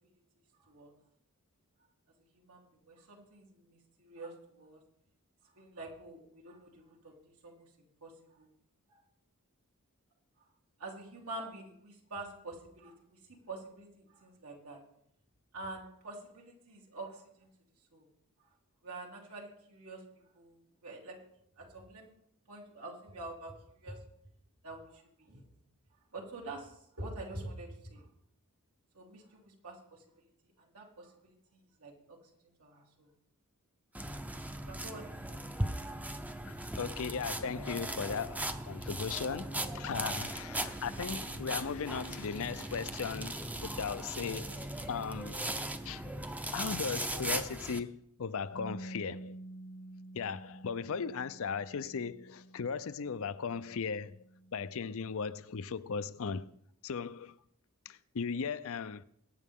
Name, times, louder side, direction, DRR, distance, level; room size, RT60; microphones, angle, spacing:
voice 1, 0.6-0.9 2.3-4.8 5.5-8.5 8.9-9.0 10.8-13.2 13.5-14.8 15.5-17.5 17.9-18.1 18.4-18.5 18.8-20.0 20.3-21.2 21.6-22.1 22.5-23.5 23.8-24.0 24.6-25.5 26.1-28.1 28.9-30.0 30.6-32.2 32.4-33.1 34.0-34.3 34.7-35.6, right 2 dB, 85° right, 3.3 m, -47 dB
sound 1, 33.9-47.8, right 1 dB, 5° right, 0.6 m, -38 dB
voice 2, 36.5-45.5 45.8-46.1 46.5-49.4 50.1-54.2 54.5-56.6 56.8-57.4 57.9-59.0, left 6 dB, 65° left, 0.5 m, -37 dB
Bass guitar, 48.5-54.8, right 1 dB, 85° left, 1.8 m, -49 dB
22.0 x 9.3 x 3.7 m
head